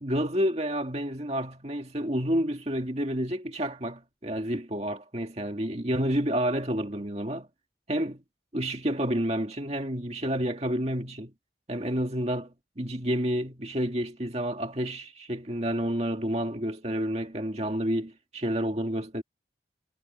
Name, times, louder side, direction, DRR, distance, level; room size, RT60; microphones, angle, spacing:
voice 1, 0.0-7.5 7.9-8.2 8.5-11.3 11.7-19.2, equal, 35° right, 2.0 m, -29 dB
head